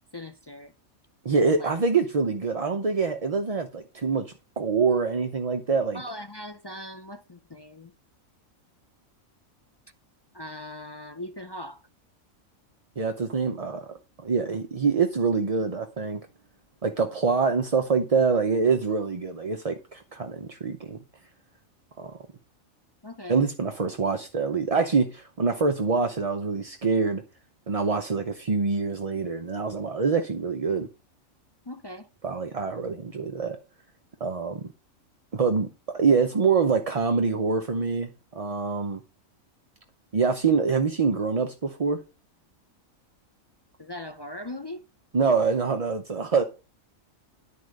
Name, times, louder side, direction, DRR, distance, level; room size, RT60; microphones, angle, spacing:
voice 1, 0.1-0.7 1.5-1.7 5.9-7.9 10.3-11.9 23.0-23.4 31.6-32.1 43.8-44.8, left 1 dB, 40° left, 0.3 m, -40 dB
voice 2, 1.2-6.0 13.0-16.2 16.8-21.0 22.0-22.2 23.3-27.2 27.7-30.9 32.2-33.6 34.2-34.7 35.3-39.0 40.1-42.0 45.1-46.4, right 5 dB, 35° right, 0.6 m, -25 dB
11.0 x 4.6 x 6.4 m
omnidirectional pair, 1.5 m